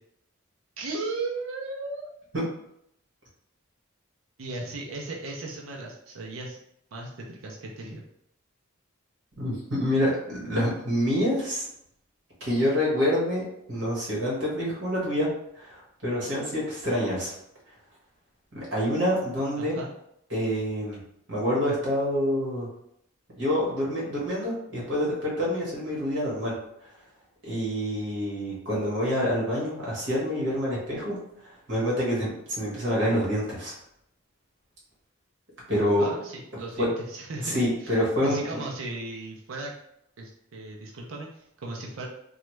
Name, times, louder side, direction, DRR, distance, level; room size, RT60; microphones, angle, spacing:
voice 1, 0.8-2.1 4.4-6.6 6.9-8.0 19.6-19.9 36.0-37.5 37.8-37.9 38.2-39.7 40.2-42.1, right 2 dB, 80° right, -1 dB, 0.6 m, -36 dB
voice 2, 9.4-11.6 12.4-13.4 13.7-15.3 15.6-17.3 18.5-19.8 20.3-21.0 21.3-22.7 23.4-26.5 27.4-31.1 31.4-33.7 35.7-36.1 36.8-36.9 37.4-38.6, equal, 60° right, -5 dB, 1.4 m, -27 dB
3.1 x 2.3 x 3.1 m, 0.75 s
head